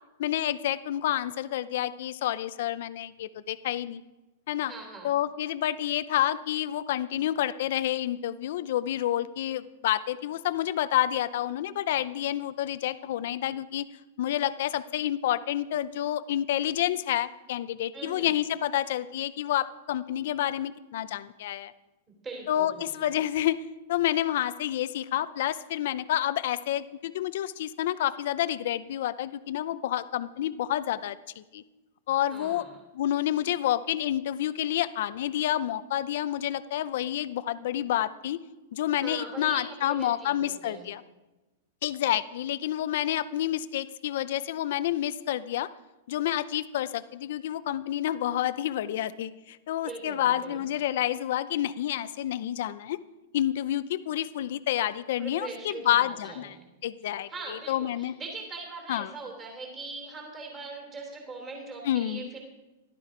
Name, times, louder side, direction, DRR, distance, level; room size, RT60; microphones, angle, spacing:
voice 1, 0.2-4.0 4.5-4.7 5.0-13.8 14.2-21.7 22.5-31.6 32.1-32.6 33.0-38.4 38.7-41.0 41.8-45.7 46.1-53.0 53.3-56.5 56.8-58.1 58.9-59.1 61.8-62.3, left 12 dB, 50° left, 13 dB, 0.5 m, -29 dB
voice 2, 4.7-5.1 17.9-18.3 22.2-23.1 32.3-32.8 39.0-40.9 49.8-50.6 55.2-56.6 57.3-62.4, right 3 dB, 15° right, 1 dB, 3.1 m, -41 dB
15.5 x 12.0 x 4.9 m, 1.1 s
supercardioid pair, 180°, 0 cm